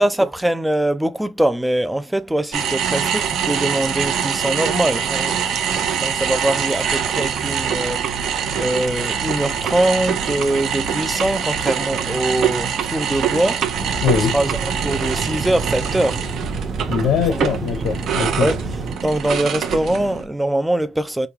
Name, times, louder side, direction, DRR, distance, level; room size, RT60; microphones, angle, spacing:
voice 1, 0.0-8.0 8.6-13.6 14.1-16.2 17.3-17.4 18.4-18.6 19.0-21.3, right 1 dB, 5° right, 0.4 m, -22 dB
sound 1, 2.5-20.2, right 7 dB, 55° right, 0.8 m, -24 dB
sound 2, 13.7-19.0, right 3 dB, 20° right, 0.8 m, -29 dB
voice 2, 14.0-14.4 16.8-18.5, left 8 dB, 70° left, 0.9 m, -21 dB
5.1 x 2.3 x 2.9 m
cardioid pair, 145°, 0 cm